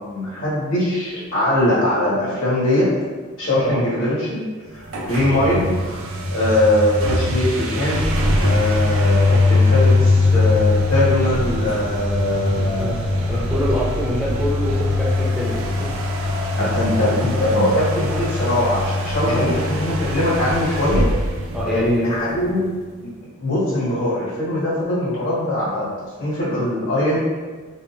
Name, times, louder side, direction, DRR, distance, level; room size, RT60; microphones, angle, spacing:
voice 1, 0.0-2.9 3.4-4.4 4.7-5.7 6.3-8.1 8.4-13.2 16.6-21.1 21.7-22.6 23.0-23.1 23.4-25.9 26.2-27.2, left 1 dB, 80° left, -7 dB, 1.4 m, -21 dB
sound 1, 4.8-22.3, left 2 dB, 80° right, 0.4 m, -21 dB
voice 2, 12.5-13.0 13.3-15.9 16.6-17.0 19.2-19.4 21.5-22.0, equal, ahead, -7 dB, 0.4 m, -25 dB
3.4 x 2.8 x 2.4 m, 1.4 s
head